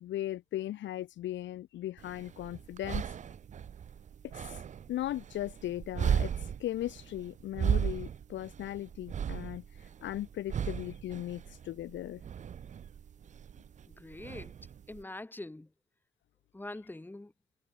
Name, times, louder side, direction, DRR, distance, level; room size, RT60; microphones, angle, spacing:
voice 1, 0.0-3.0 4.3-4.4 4.9-6.3 6.6-9.6 10.0-12.2, left 13 dB, 70° left, 0.6 m, -37 dB
sound 1, 2.0-15.0, right 8 dB, 40° right, 0.5 m, -36 dB
voice 2, 13.9-14.5 14.9-15.7 16.5-17.3, left 2 dB, 10° left, 1.5 m, -44 dB
cardioid pair, 90°, 20 cm